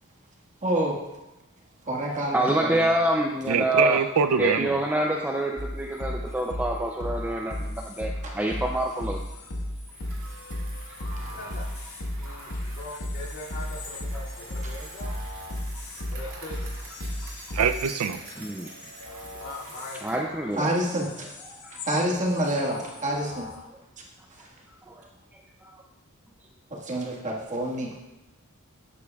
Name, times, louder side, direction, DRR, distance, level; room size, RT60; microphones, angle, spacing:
voice 1, 0.6-1.0 1.8-2.8 8.2-8.3 20.6-21.3 21.7-23.5 24.3-24.5 26.7-28.0, right 1 dB, 35° right, -3 dB, 1.6 m, -28 dB
voice 2, 2.3-4.0 4.4-9.2 10.9-11.2 12.7-12.8 17.2-17.3 18.4-18.7 19.1-19.3 20.0-20.7 21.6-21.8 24.9-25.8, right 1 dB, 10° right, 1 dB, 0.4 m, -27 dB
voice 3, 3.5-4.7 17.5-18.2, right 6 dB, 85° right, 9 dB, 0.5 m, -23 dB
sound 1, 5.6-22.0 22.3-23.5, left 1 dB, 75° left, 1.5 m, -35 dB
Bicycle, 9.8-20.3, right 4 dB, 60° right, 2.6 m, -48 dB
voice 4, 11.2-11.7 12.2-15.1 15.6-15.8 16.1-16.7 19.4-20.2 21.0-21.2 22.6-22.9, left 1 dB, 60° left, -6 dB, 2.5 m, -41 dB
12.0 x 8.3 x 2.3 m, 0.99 s
head